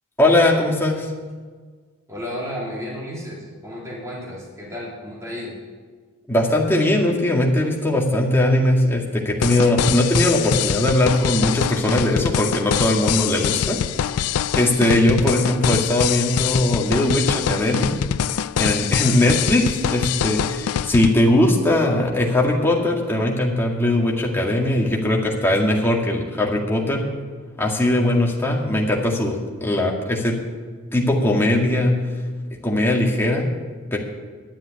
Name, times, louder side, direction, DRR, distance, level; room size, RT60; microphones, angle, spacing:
voice 1, 0.2-1.1 6.3-13.8 14.5-17.9 18.6-27.0 27.6-30.4 30.9-31.9 32.6-33.5 33.9-34.0, left 1 dB, 10° left, -2 dB, 2.0 m, -20 dB
voice 2, 2.1-5.6, equal, 15° right, -5 dB, 3.4 m, -32 dB
sound 1, 9.4-21.1, left 9 dB, 90° left, 0.4 m, -24 dB
10.5 x 9.7 x 9.8 m, 1.5 s
head